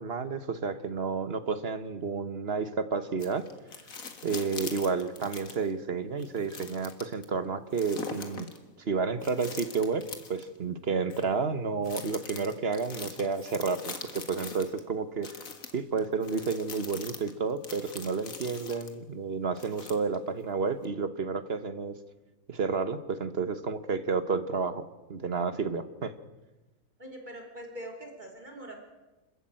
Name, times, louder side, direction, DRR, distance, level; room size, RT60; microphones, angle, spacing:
voice 1, 0.0-3.4 4.2-8.5 8.8-10.0 10.3-15.3 15.7-22.0 22.5-24.8 25.1-26.1, right 4 dB, 45° right, 11 dB, 1.3 m, -31 dB
sound 1, 3.2-5.7 6.2-7.2 7.7-8.6 9.2-10.5 11.1-11.2 11.8-14.8 15.2-18.9 19.6-20.3 20.8-20.9, left 5 dB, 70° left, 2.2 m, -42 dB
voice 2, 27.0-28.7, right 1 dB, 30° right, 2 dB, 3.4 m, -43 dB
26.5 x 14.0 x 8.9 m, 1.1 s
omnidirectional pair, 1.5 m